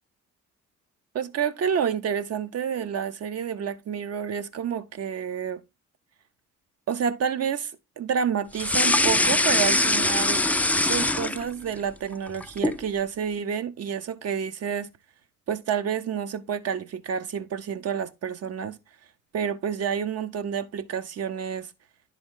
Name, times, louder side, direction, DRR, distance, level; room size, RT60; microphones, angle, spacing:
voice 1, 1.1-5.6 6.9-10.4 10.8-14.9 15.5-18.8 19.3-21.7, right 7 dB, 55° right, 0.8 m, -29 dB
sound 1, 8.5-11.8 12.1-12.8, left 2 dB, 5° left, 0.3 m, -22 dB
11.0 x 3.8 x 3.7 m
cardioid pair, 90°, 30 cm